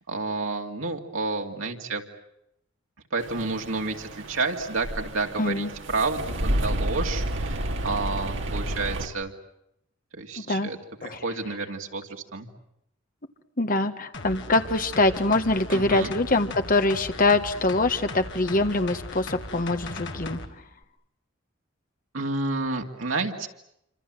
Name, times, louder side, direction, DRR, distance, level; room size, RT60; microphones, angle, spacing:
voice 1, 0.1-2.0 3.1-9.3 10.1-10.8 11.0-12.5 15.7-16.1 22.1-23.5, right 3 dB, 85° right, 2 dB, 2.5 m, -30 dB
sound 1, 3.2-9.1, right 1 dB, 65° right, 2.7 m, -30 dB
voice 2, 5.4-5.7 10.5-10.7 11.0-11.2 13.6-20.4, left 2 dB, 45° left, 8 dB, 1.6 m, -24 dB
sound 2, 14.1-20.5 20.8-20.9, left 2 dB, 60° left, 2.3 m, -38 dB
27.5 x 26.0 x 7.7 m, 0.81 s
head